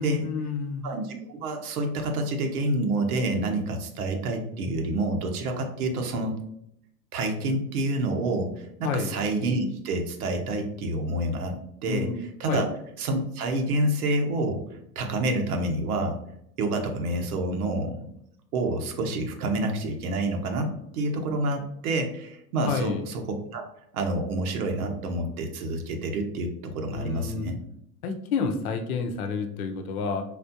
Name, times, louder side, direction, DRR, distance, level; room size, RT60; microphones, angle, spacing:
voice 1, 0.0-0.9 8.8-9.1 11.9-12.2 12.5-12.7 22.7-23.0 26.9-27.5 28.0-30.2, left 5 dB, 60° left, 6 dB, 0.8 m, -29 dB
voice 2, 0.8-6.3 7.1-12.7 13.0-14.6 14.9-16.2 16.6-18.1 18.5-23.2 23.5-23.6 23.9-27.6, right 2 dB, 60° right, 4 dB, 1.1 m, -28 dB
4.3 x 3.3 x 2.8 m, 0.74 s
hypercardioid pair, 105°, 50 cm